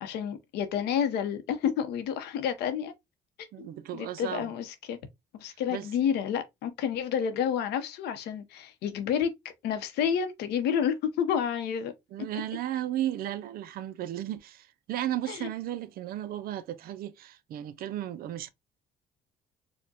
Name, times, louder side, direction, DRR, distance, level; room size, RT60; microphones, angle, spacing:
voice 1, 0.0-2.9 3.6-5.0 5.3-9.3 9.6-11.9 15.3-15.5, left 8 dB, 80° left, 0.7 m, -30 dB
voice 2, 3.5-4.5 5.7-5.9 12.1-18.5, right 12 dB, 60° right, 0.4 m, -34 dB
4.4 x 2.1 x 2.7 m
cardioid pair, 110°, 17 cm